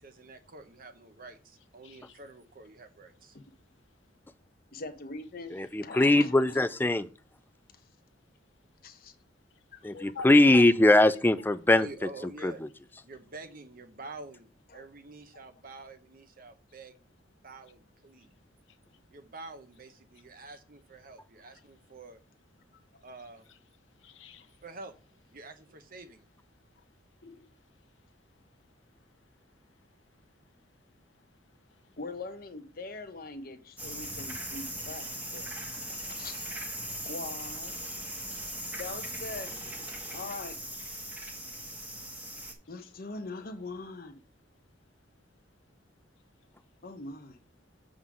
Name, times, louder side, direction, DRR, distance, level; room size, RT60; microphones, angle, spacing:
voice 1, 0.0-3.4 11.7-12.6 13.0-16.9 17.4-18.3 19.1-22.2 23.0-23.5 24.6-24.9 25.3-26.3, right 3 dB, 50° right, 1.0 m, -47 dB
voice 2, 1.8-2.2 3.3-3.5 9.5-10.9 11.4-11.5 18.2-18.3 18.7-19.0 20.5-20.6 21.4-21.8 22.6-22.8 23.5-24.6 26.5-27.5 28.1-32.0 36.9-37.1 38.0-38.8 40.0-40.1 41.2-41.4 42.8-42.9, left 4 dB, 90° left, 0.9 m, -52 dB
voice 3, 4.7-6.3 8.8-9.1 9.7-9.8 14.7-14.8 15.3-15.4 32.0-35.5 35.9-36.7 37.0-37.7 38.8-39.6 40.1-40.6 42.7-44.2 46.8-47.4, left 3 dB, 55° left, 1.0 m, -42 dB
voice 4, 5.5-7.1 9.8-11.9 12.2-12.5, left 2 dB, 10° left, 0.4 m, -22 dB
sound 1, 33.8-42.5, right 1 dB, 10° right, 1.3 m, -39 dB
7.2 x 3.8 x 6.1 m
head